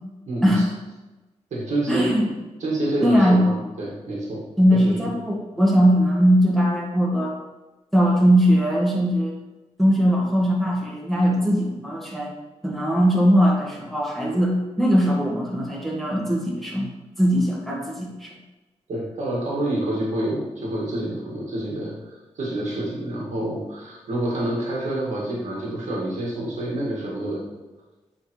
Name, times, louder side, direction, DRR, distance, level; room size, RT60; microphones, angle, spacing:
voice 1, 0.3-0.6 1.5-2.1 2.6-4.4 4.7-4.9 18.9-27.4, right 1 dB, 80° right, -4 dB, 1.8 m, -27 dB
voice 2, 1.9-2.3 3.0-3.4 4.6-7.4 7.9-9.3 9.8-12.3 12.6-16.9 17.2-18.3, equal, ahead, -3 dB, 1.7 m, -20 dB
7.8 x 3.8 x 3.2 m, 1.1 s
cardioid pair, 70°, 12 cm